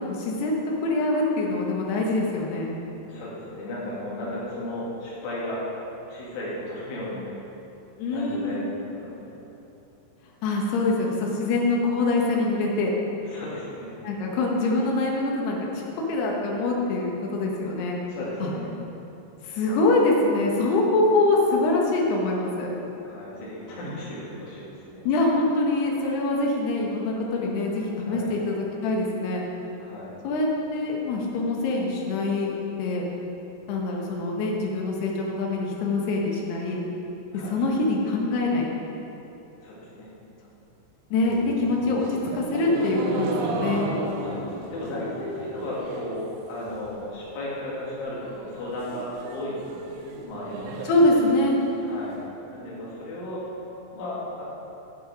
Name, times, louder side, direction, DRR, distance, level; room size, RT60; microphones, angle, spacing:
voice 1, 0.0-2.7 8.0-8.7 10.4-12.9 14.0-15.7 16.1-18.0 18.4-18.5 19.4-22.7 25.0-29.4 30.2-32.5 32.8-33.0 33.7-36.8 37.3-38.7 41.1-43.9 50.8-51.6, left 2 dB, 70° left, -1 dB, 3.1 m, -24 dB
voice 2, 3.1-5.6 6.1-7.3 8.1-9.5 13.2-13.9 18.0-18.7 23.0-25.1 27.9-28.3 29.8-30.2 37.3-37.6 39.6-40.1 44.2-50.7 51.8-52.2 52.5-53.4 53.9-54.4, left 1 dB, 85° left, -7 dB, 4.8 m, -35 dB
sound 1, 41.2-46.2 46.5-47.0 47.4-47.5 47.7-47.8 48.1-52.1, right 2 dB, 85° right, 3.4 m, -34 dB
12.0 x 7.1 x 5.0 m, 3.0 s
omnidirectional pair, 5.3 m